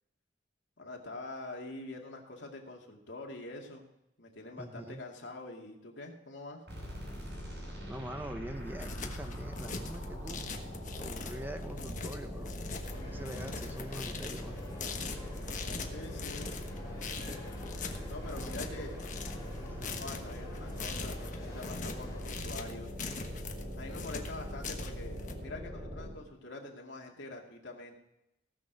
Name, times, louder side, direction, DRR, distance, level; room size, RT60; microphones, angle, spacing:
voice 1, 0.8-3.8 4.2-6.6 15.9-16.6 18.1-19.0 20.0-22.9 23.8-28.0, left 2 dB, 75° left, 0 dB, 2.3 m, -45 dB
voice 2, 4.6-5.0 7.8-10.5 11.0-12.6 13.0-14.6 18.2-18.8 19.6-20.0, right 1 dB, 10° right, 7 dB, 0.7 m, -44 dB
sound 1, 6.7-26.3, equal, 65° right, 4.9 m, -42 dB
sound 2, 8.5-25.3, left 4 dB, 40° left, 1.2 m, -42 dB
sound 3, 12.8-22.4, left 2 dB, 20° left, 4.6 m, -50 dB
17.5 x 6.5 x 5.1 m, 0.87 s
head